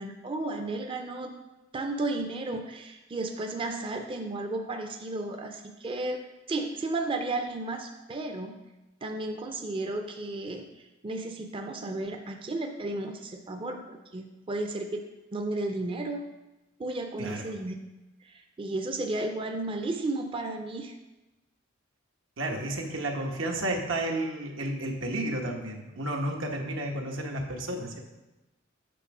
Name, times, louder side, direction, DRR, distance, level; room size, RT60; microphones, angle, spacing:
voice 1, 0.0-1.3 1.7-6.2 6.5-8.6 9.0-15.0 15.3-16.3 16.8-17.7 18.2-20.9, right 2 dB, 25° right, 4 dB, 0.5 m, -33 dB
voice 2, 22.4-28.0, right 1 dB, 85° right, 1 dB, 1.1 m, -32 dB
8.4 x 3.6 x 5.9 m, 1.0 s
head